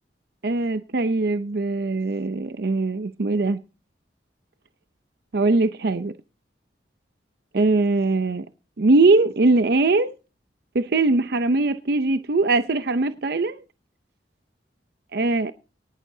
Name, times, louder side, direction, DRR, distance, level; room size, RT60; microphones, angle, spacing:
voice 1, 0.4-3.6 5.3-6.1 7.5-8.5 8.8-10.1 10.7-13.6 15.1-15.5, right 3 dB, 60° right, 0.6 m, -21 dB
19.0 x 11.5 x 2.7 m
head